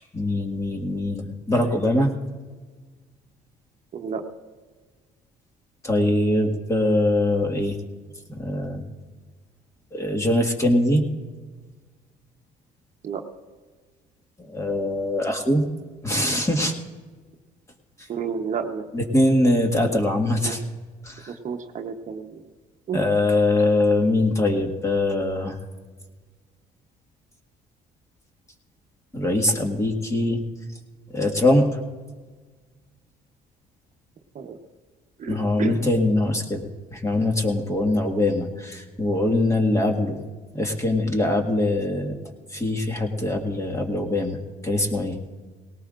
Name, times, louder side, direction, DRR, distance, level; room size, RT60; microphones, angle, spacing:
voice 1, 0.1-2.1 5.8-7.8 8.3-8.8 9.9-11.0 14.5-15.6 16.0-16.7 18.9-20.6 21.0-21.3 22.9-25.6 29.1-30.4 31.1-31.7 35.3-36.7 36.9-40.2 40.5-42.2 42.5-44.4 44.6-45.2, left 1 dB, 15° left, 3 dB, 1.7 m, -22 dB
voice 2, 3.9-4.2 13.0-13.2 18.1-18.9 19.8-19.9 20.4-20.6 21.3-22.4 22.9-23.0 34.3-34.6 35.2-35.8, right 6 dB, 45° right, 4 dB, 1.0 m, -31 dB
18.5 x 18.5 x 2.5 m, 1.4 s
cardioid pair, 110°, 17 cm